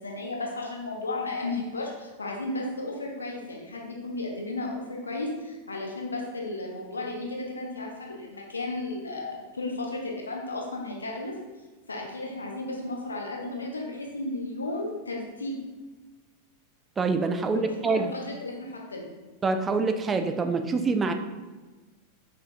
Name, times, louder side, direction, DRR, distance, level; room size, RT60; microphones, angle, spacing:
voice 1, 0.0-11.3 11.9-15.6 17.5-19.1, left 2 dB, 75° left, 0 dB, 0.8 m, -34 dB
voice 2, 17.0-18.1 19.4-21.1, right 4 dB, 20° right, 7 dB, 0.3 m, -25 dB
6.0 x 3.0 x 2.6 m, 1.3 s
figure-of-eight pair, 90°, 0 cm